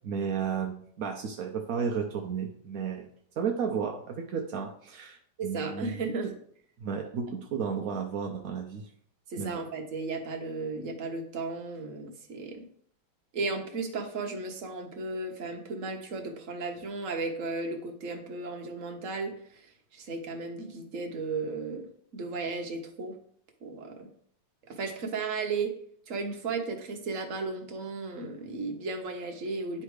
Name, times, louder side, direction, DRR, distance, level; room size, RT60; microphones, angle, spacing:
voice 1, 0.0-3.1 3.4-6.0 6.8-8.9 9.4-9.5, right 6 dB, 65° right, 2 dB, 0.9 m, -33 dB
voice 2, 5.4-6.3 7.3-7.4 9.3-12.6 13.3-19.7 19.9-21.9 22.1-23.2 23.6-24.1 24.7-25.7 26.1-29.8, right 3 dB, 50° right, 3 dB, 1.2 m, -35 dB
10.0 x 3.3 x 4.8 m, 0.62 s
omnidirectional pair, 2.2 m